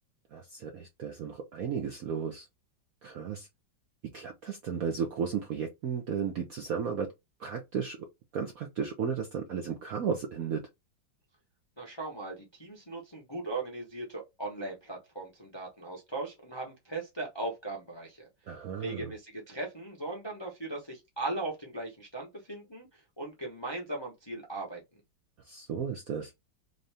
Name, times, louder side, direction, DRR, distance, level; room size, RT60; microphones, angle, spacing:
voice 1, 0.3-2.5 3.0-3.5 4.1-7.1 7.4-8.1 8.3-10.6 18.5-19.1 25.4-26.3, right 6 dB, 65° right, 0.8 m, -34 dB
voice 2, 11.8-18.3 18.8-24.8, right 2 dB, 25° left, 0.6 m, -38 dB
3.8 x 2.7 x 3.3 m
omnidirectional pair, 2.2 m